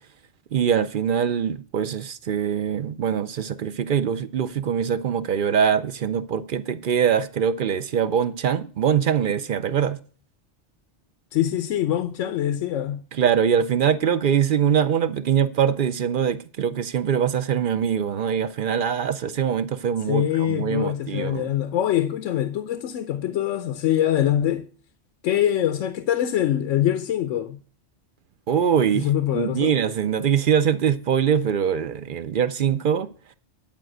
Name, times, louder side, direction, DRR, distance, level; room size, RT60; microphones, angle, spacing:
voice 1, 0.5-10.0 13.1-21.5 28.5-29.1 29.3-33.1, right 8 dB, 55° right, 0.6 m, -23 dB
voice 2, 11.3-13.1 20.1-24.7 25.2-27.6 28.9-29.7, left 11 dB, 90° left, 1.0 m, -24 dB
10.5 x 5.1 x 7.7 m
omnidirectional pair, 1.2 m